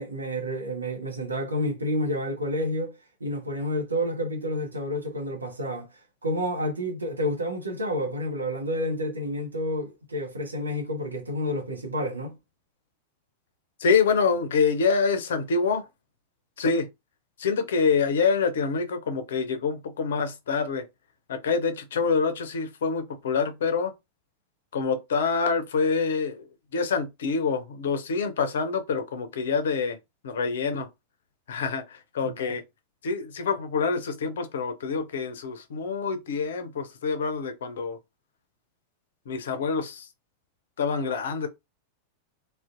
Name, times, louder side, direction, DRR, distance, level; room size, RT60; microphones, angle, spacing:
voice 1, 0.0-2.9 3.2-12.3 32.2-32.6, equal, 75° right, 0.7 m, -30 dB
voice 2, 13.8-15.8 16.6-16.9 17.4-20.8 21.3-23.9 24.7-30.0 30.2-30.9 31.5-32.6 33.0-38.0 39.3-40.1 40.8-41.5, left 5 dB, 60° left, 0.4 m, -26 dB
2.5 x 2.1 x 2.4 m
figure-of-eight pair, 90°, 0 cm